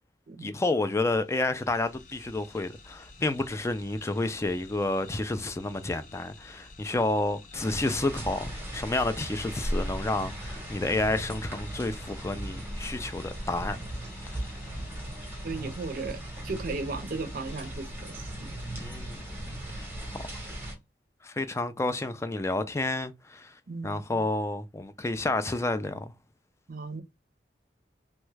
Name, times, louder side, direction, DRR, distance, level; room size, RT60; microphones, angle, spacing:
voice 1, 0.4-13.8 14.3-14.4 18.8-19.3 20.1-20.2 21.2-23.5 23.8-26.1, left 2 dB, 15° left, 0.3 m, -30 dB
sound 1, 1.0-20.7, left 3 dB, 45° left, 0.8 m, -52 dB
sound 2, 7.5-20.7, right 1 dB, 10° right, 0.8 m, -37 dB
voice 2, 15.4-18.6 23.7-24.2 26.7-27.0, right 3 dB, 50° right, 0.5 m, -36 dB
3.0 x 2.3 x 3.2 m
head